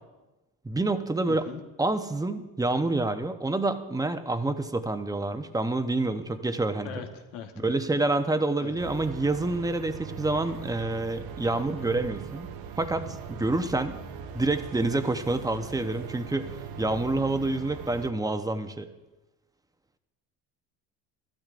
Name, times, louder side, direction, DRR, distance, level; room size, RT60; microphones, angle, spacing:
voice 1, 0.6-1.5 1.8-7.1 7.6-12.5 12.8-14.0 14.3-18.9, right 2 dB, 10° right, 9 dB, 0.8 m, -28 dB
voice 2, 1.3-1.6 6.8-7.1 7.3-7.7 8.6-8.7, left 8 dB, 90° left, 4 dB, 1.4 m, -39 dB
sound 1, 8.8-18.1, right 7 dB, 60° right, 0.9 m, -40 dB
14.0 x 12.5 x 2.5 m, 1.1 s
supercardioid pair, 85°, 41 cm